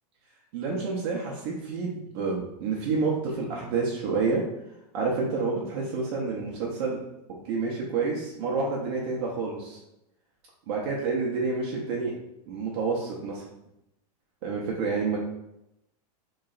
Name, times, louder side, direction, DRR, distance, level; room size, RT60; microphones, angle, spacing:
voice 1, 0.5-4.4 4.9-7.0 7.3-9.8 10.7-12.1 12.5-13.5 14.4-15.2, right 4 dB, 40° right, -3 dB, 0.8 m, -29 dB
3.3 x 3.1 x 3.9 m, 0.87 s
supercardioid pair, 170°, 21 cm